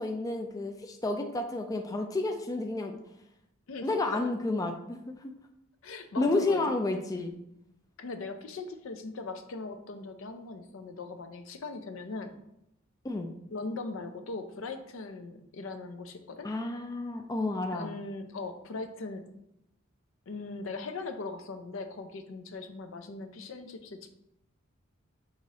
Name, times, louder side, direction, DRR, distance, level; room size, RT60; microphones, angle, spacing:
voice 1, 0.0-3.0 3.8-5.3 6.2-7.3 13.0-13.3 16.4-17.9, left 2 dB, 15° left, 4 dB, 0.3 m, -31 dB
voice 2, 3.7-4.3 5.8-6.6 8.0-12.4 13.5-16.5 17.7-19.2 20.3-24.1, left 3 dB, 70° left, 7 dB, 0.5 m, -40 dB
6.1 x 3.0 x 2.7 m, 0.81 s
head